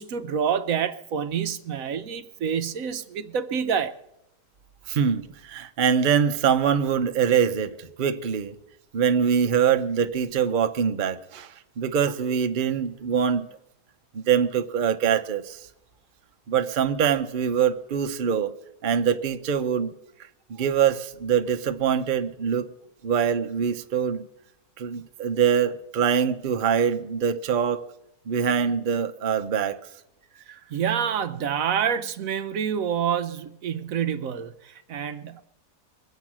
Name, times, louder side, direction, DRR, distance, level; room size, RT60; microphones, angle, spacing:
voice 1, 0.0-3.9 30.5-35.4, right 7 dB, 65° right, 1.0 m, -27 dB
voice 2, 4.9-8.5 8.9-13.5 14.1-15.7 16.5-18.5 18.8-19.9 20.5-22.7 23.0-24.3 24.8-27.8 28.3-29.8, right 7 dB, 50° right, 0.6 m, -24 dB
22.5 x 8.0 x 6.0 m
omnidirectional pair, 1.7 m